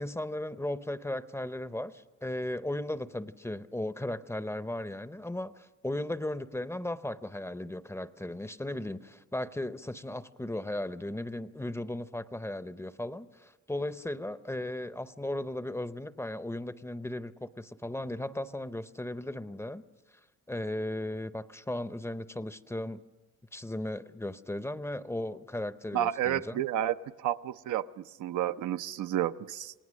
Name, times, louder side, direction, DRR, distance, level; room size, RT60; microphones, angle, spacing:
voice 1, 0.0-19.8 20.5-23.0 23.5-26.6, left 1 dB, 10° left, 13 dB, 0.6 m, -36 dB
voice 2, 25.9-29.7, right 11 dB, 75° right, 10 dB, 0.6 m, -31 dB
28.0 x 18.5 x 6.3 m, 1.2 s
cardioid pair, 90°, 30 cm